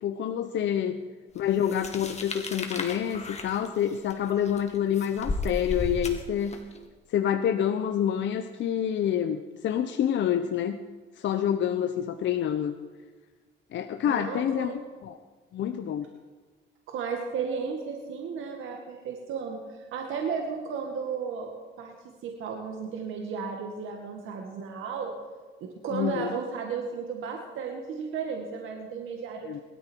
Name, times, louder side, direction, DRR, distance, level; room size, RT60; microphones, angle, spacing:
voice 1, 0.0-1.0 1.3-6.6 7.1-10.8 11.2-12.7 13.7-15.2 15.5-16.1 25.9-26.3 29.5-29.6, left 9 dB, 70° left, 8 dB, 0.9 m, -27 dB
sound 1, 1.6-6.8, left 2 dB, 35° left, 2.4 m, -35 dB
voice 2, 14.1-14.8 16.9-21.5 21.8-22.0 22.2-25.1 25.6-29.5, right 6 dB, 85° right, 1 dB, 2.1 m, -34 dB
21.5 x 13.5 x 4.6 m, 1.4 s
cardioid pair, 90°, 20 cm